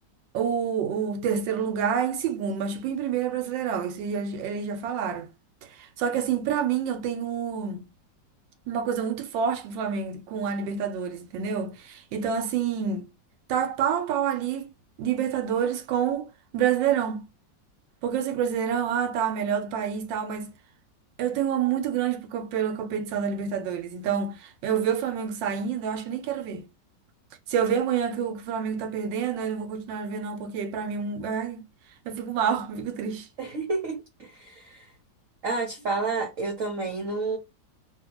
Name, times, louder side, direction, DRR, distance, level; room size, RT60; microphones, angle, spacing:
voice 1, 0.3-5.3 5.7-7.9 8.7-13.1 13.5-14.7 15.0-17.2 18.0-20.5 21.2-26.7 27.5-31.7 32.0-33.3, right 7 dB, 85° right, 1.4 m, -28 dB
voice 2, 33.4-34.0 34.4-34.5 35.4-37.4, right 3 dB, 55° right, 1.1 m, -29 dB
2.8 x 2.7 x 2.9 m
omnidirectional pair, 1.9 m